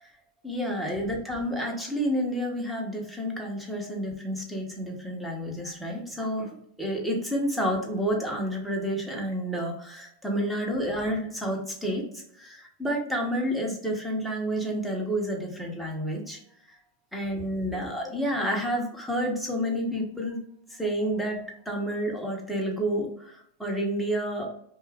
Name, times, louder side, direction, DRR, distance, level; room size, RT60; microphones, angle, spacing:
voice 1, 0.4-6.5 6.8-16.4 17.1-20.4 20.8-21.4 21.7-24.5, equal, ahead, -1 dB, 0.9 m, -30 dB
2.5 x 2.3 x 3.3 m, 0.70 s
hypercardioid pair, 115°, 0 cm